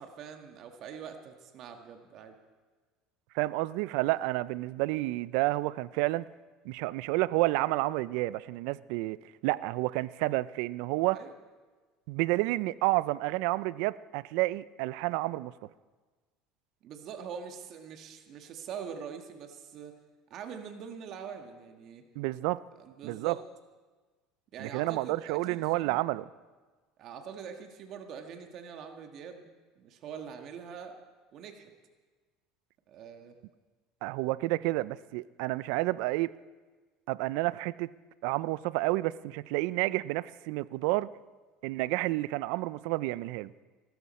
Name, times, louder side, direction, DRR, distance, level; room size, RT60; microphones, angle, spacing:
voice 1, 0.0-2.4 11.1-11.3 16.8-19.9 20.3-22.0 22.8-23.4 24.5-26.0 27.0-29.5 29.8-31.0 31.3-31.7 32.9-33.3, right 7 dB, 55° right, 5 dB, 1.5 m, -44 dB
voice 2, 3.3-6.2 6.7-9.2 9.4-11.2 12.1-15.5 22.2-22.6 23.0-23.4 24.6-26.3 34.0-36.3 37.1-37.9 38.2-41.1 41.6-43.5, right 19 dB, 75° right, 19 dB, 0.4 m, -30 dB
18.0 x 14.0 x 4.2 m, 1.3 s
supercardioid pair, 105°, 0 cm